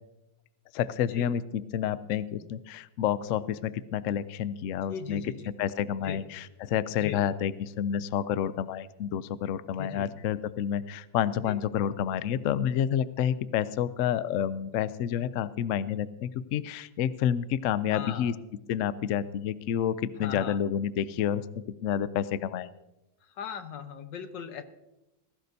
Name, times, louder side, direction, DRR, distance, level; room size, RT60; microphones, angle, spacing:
voice 1, 0.7-1.4 1.7-5.2 5.6-18.3 18.7-21.4 21.8-22.7, left 9 dB, 90° left, 15 dB, 0.6 m, -29 dB
voice 2, 4.9-5.5 6.0-6.2 7.0-7.2 9.8-10.1 11.5-11.6 17.9-18.4 20.2-20.6 23.2-24.6, left 7 dB, 70° left, 8 dB, 1.7 m, -39 dB
20.5 x 16.0 x 2.7 m, 0.95 s
omnidirectional pair, 2.0 m